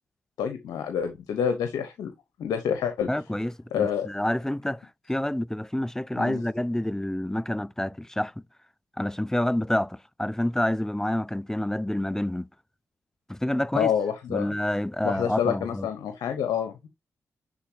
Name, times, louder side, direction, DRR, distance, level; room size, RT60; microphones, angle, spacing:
voice 1, 0.4-2.1 2.4-3.1 3.7-4.1 6.2-6.4 13.7-14.5 15.0-16.7, left 8 dB, 85° left, 0.9 m, -27 dB
voice 2, 3.1-8.3 9.0-12.5 13.3-13.9 14.3-15.9, left 1 dB, 10° left, 0.4 m, -28 dB
9.6 x 4.0 x 2.8 m
supercardioid pair, 45°, 6 cm